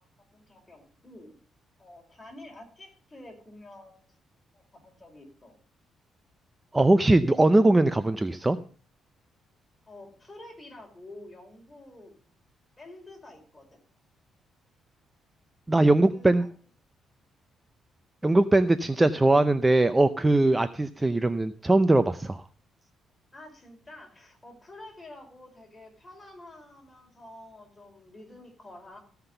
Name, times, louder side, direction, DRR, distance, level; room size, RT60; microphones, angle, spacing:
voice 1, 0.0-1.4 1.8-4.0 4.5-5.6 9.9-12.1 12.8-13.8 15.7-16.5 21.0-21.4 23.3-29.0, left 1 dB, 20° left, 1 dB, 5.1 m, -49 dB
voice 2, 6.7-8.6 15.7-16.4 18.2-22.4, right 2 dB, 15° right, 12 dB, 0.6 m, -21 dB
15.5 x 5.9 x 6.8 m, 0.42 s
cardioid pair, 90°, 0 cm